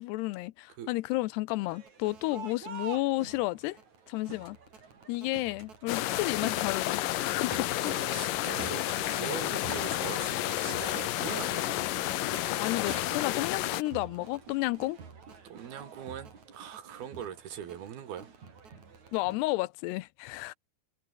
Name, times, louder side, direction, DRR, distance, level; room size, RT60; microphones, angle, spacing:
voice 1, 0.0-3.8 4.1-4.6 5.1-7.9 8.4-8.6 12.6-15.0 19.1-20.5, left 20 dB, 85° left, 2.8 m, -32 dB
Crowd, 1.6-19.4, right 5 dB, 45° right, 5.2 m, -48 dB
sound 1, 5.9-13.8, left 15 dB, 70° left, 2.3 m, -31 dB
voice 2, 7.8-11.9 15.4-18.3, right 9 dB, 65° right, 4.1 m, -41 dB
omnidirectional pair, 4.7 m